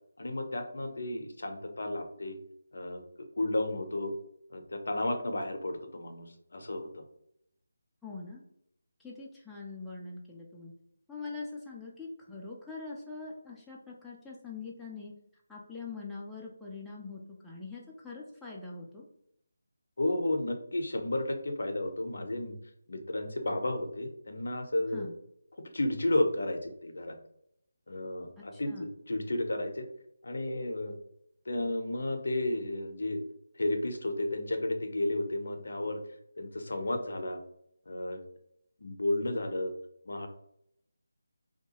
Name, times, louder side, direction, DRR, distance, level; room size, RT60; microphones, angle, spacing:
voice 1, 0.2-2.4 2.7-3.0 3.4-4.1 4.5-7.0 20.0-22.5 22.9-25.1 25.7-27.2 27.9-29.9 30.2-30.9 31.5-33.2 33.6-36.0 36.4-37.4 37.9-38.2 38.8-39.7 40.1-40.3, left 1 dB, 70° left, 5 dB, 0.5 m, -32 dB
voice 2, 8.0-8.4 9.0-10.7 11.1-15.1 15.5-19.1 24.9-25.1 28.4-28.9, left 4 dB, ahead, -6 dB, 0.3 m, -43 dB
2.7 x 2.2 x 2.8 m, 0.74 s
figure-of-eight pair, 160°, 0 cm